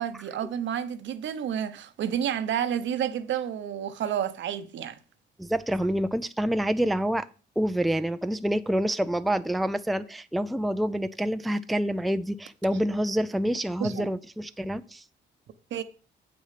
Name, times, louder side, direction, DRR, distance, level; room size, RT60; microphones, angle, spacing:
voice 1, 0.0-5.0 13.8-14.1 15.7-15.8, right 9 dB, 70° right, 0.9 m, -30 dB
voice 2, 5.4-7.3 7.6-15.0, equal, ahead, 0.5 m, -27 dB
7.9 x 6.2 x 5.8 m
cardioid pair, 90°, 20 cm